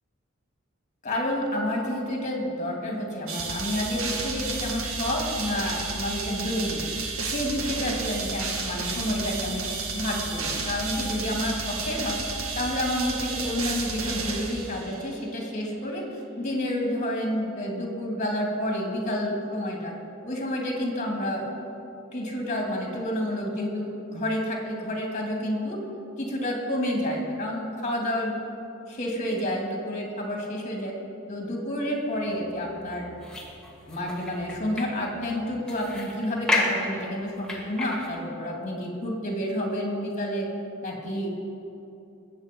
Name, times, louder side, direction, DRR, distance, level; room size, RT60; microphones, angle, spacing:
voice 1, 1.0-6.8 7.2-9.7 9.9-12.2 12.5-16.0 16.4-19.9 20.2-21.5 22.1-25.8 26.2-28.4 28.9-30.9 31.3-33.1 33.9-40.5 40.8-41.3, left 1 dB, 35° left, 0 dB, 2.7 m, -29 dB
sound 1, 3.3-15.2, right 4 dB, 80° right, 1.6 m, -32 dB
sound 2, 31.8-38.1, left 2 dB, 5° left, 2.0 m, -33 dB
21.0 x 8.3 x 5.4 m, 2.8 s
head